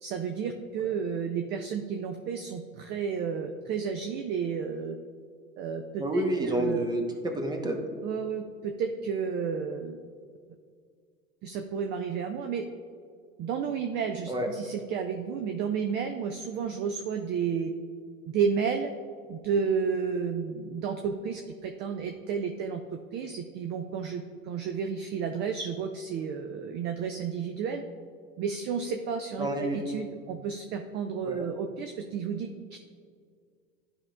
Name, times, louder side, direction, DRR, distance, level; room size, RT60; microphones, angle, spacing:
voice 1, 0.0-4.9 5.6-6.9 8.0-10.0 11.4-12.6 13.4-17.7 18.3-18.9 19.3-22.8 23.1-27.8 28.4-32.8, right 6 dB, 25° right, 6 dB, 0.4 m, -32 dB
voice 2, 6.0-7.8 14.3-14.5 29.4-29.8 31.2-31.5, right 1 dB, 10° right, 3 dB, 0.9 m, -29 dB
11.5 x 5.2 x 2.4 m, 2.1 s
hypercardioid pair, 85°, 41 cm